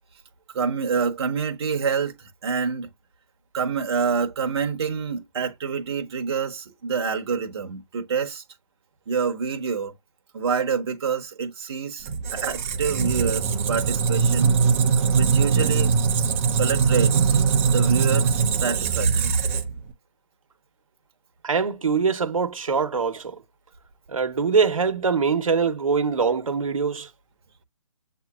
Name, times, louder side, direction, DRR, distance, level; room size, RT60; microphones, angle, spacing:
voice 1, 0.5-2.9 3.5-8.4 9.1-9.9 10.3-14.6 15.2-15.9 16.6-17.4 17.6-19.4, right 6 dB, 50° right, 1.1 m, -27 dB
Squeak, 12.1-19.9, right 5 dB, 25° right, 0.7 m, -21 dB
voice 2, 21.4-23.4 24.1-27.1, right 5 dB, 80° right, 1.1 m, -23 dB
7.8 x 2.9 x 2.4 m
hypercardioid pair, 155°, 17 cm